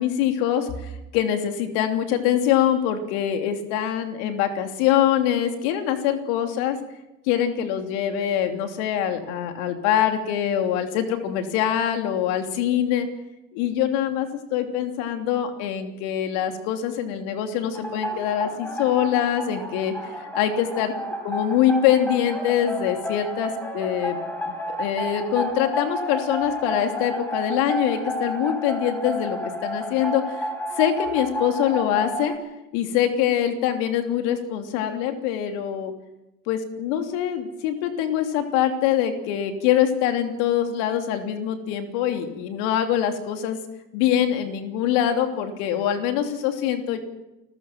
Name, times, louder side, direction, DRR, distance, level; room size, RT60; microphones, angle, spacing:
voice 1, 0.0-6.8 7.3-13.1 13.5-20.9 21.2-24.2 24.4-24.5 24.8-30.5 30.8-32.3 32.7-35.9 36.5-43.6 43.9-47.0, left 10 dB, 55° left, 6 dB, 3.1 m, -24 dB
sound 1, 17.7-32.3, equal, 5° left, 5.9 m, -31 dB
29.5 x 14.5 x 6.1 m, 0.95 s
figure-of-eight pair, 75°, 43 cm